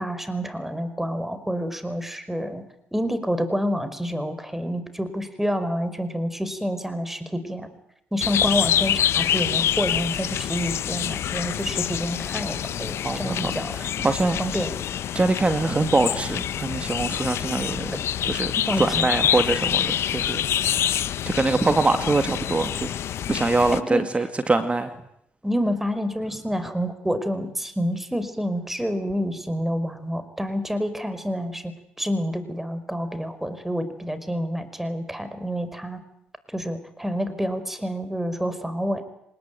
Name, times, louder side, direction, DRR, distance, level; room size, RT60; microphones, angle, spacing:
voice 1, 0.0-2.6 2.9-7.7 8.1-13.7 14.4-14.8 18.6-19.0 23.9-24.0 25.4-31.7 32.0-36.0 36.5-39.0, equal, 5° right, 11 dB, 5.0 m, -28 dB
sound 1, 8.2-23.8, left 10 dB, 65° left, 1.0 m, -26 dB
voice 2, 13.0-14.4 15.1-18.5 18.8-20.9 21.3-22.9 23.3-24.9, right 3 dB, 25° right, 8 dB, 2.2 m, -24 dB
24.5 x 20.5 x 9.2 m, 0.75 s
supercardioid pair, 55°, 5 cm